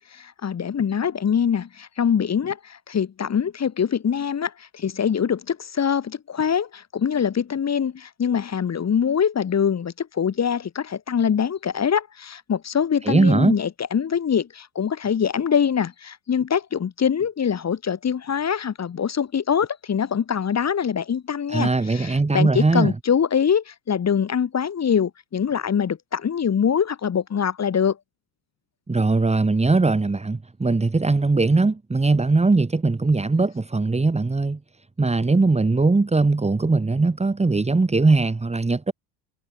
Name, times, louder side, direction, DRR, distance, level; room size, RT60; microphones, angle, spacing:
voice 1, 0.1-28.0, left 7 dB, 35° left, 5.6 m, -24 dB
voice 2, 13.1-13.6 21.5-22.9 28.9-34.6 35.0-38.9, right 3 dB, 15° right, 3.6 m, -20 dB
cardioid pair, 115°, 48 cm